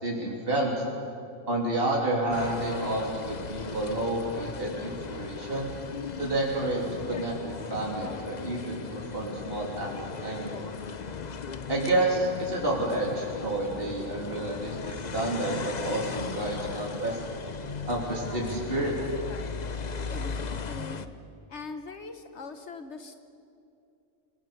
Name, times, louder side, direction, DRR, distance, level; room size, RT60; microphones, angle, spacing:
voice 1, 0.0-0.7 1.5-5.7 6.2-9.9 10.2-10.6 11.7-17.2 17.8-18.9, right 1 dB, 50° right, -2 dB, 3.7 m, -30 dB
sound 1, 2.3-21.1, left 5 dB, 40° left, 0.9 m, -37 dB
voice 2, 20.1-21.0 21.5-23.2, left 3 dB, 65° left, 7 dB, 1.4 m, -41 dB
29.0 x 19.5 x 7.0 m, 2.6 s
omnidirectional pair, 1.3 m